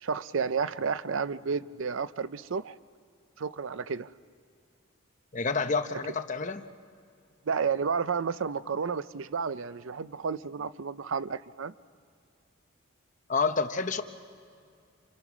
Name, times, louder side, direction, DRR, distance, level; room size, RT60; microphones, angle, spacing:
voice 1, 0.0-2.8 3.4-4.1 7.5-11.7, right 5 dB, 65° right, 15 dB, 0.5 m, -31 dB
voice 2, 5.3-6.7 13.3-14.0, left 4 dB, 35° left, 8 dB, 0.9 m, -28 dB
28.5 x 27.0 x 6.1 m, 2.4 s
head